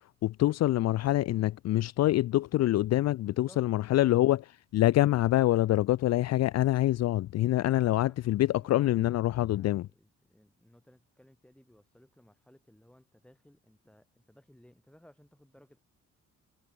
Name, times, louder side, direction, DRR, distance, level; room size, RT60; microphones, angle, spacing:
voice 1, 0.2-9.9, left 15 dB, 60° left, 0.5 m, -25 dB
voice 2, 3.2-3.7 7.6-8.2 8.5-15.8, equal, 5° left, 6.5 m, -59 dB
cardioid pair, 90°, 30 cm